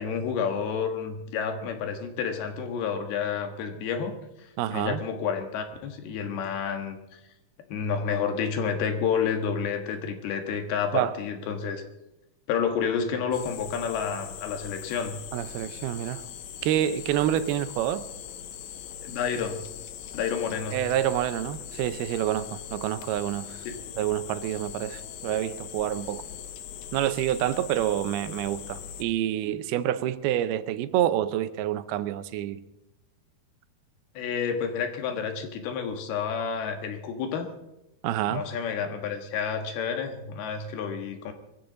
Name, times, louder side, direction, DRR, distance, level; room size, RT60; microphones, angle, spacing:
voice 1, 0.0-4.1 4.7-7.2 7.7-11.8 12.5-15.2 19.0-19.6 20.1-20.8 23.7-23.8 34.2-37.5 38.3-41.3, left 6 dB, 90° left, 3.5 m, -30 dB
voice 2, 4.6-5.0 10.9-11.2 15.3-16.3 16.6-18.1 20.7-23.6 24.0-26.2 26.9-32.6 38.0-38.4, right 12 dB, 85° right, 2.7 m, -27 dB
sound 1, 13.3-29.0, left 9 dB, 70° left, 1.9 m, -41 dB
22.0 x 15.5 x 3.9 m
omnidirectional pair, 4.4 m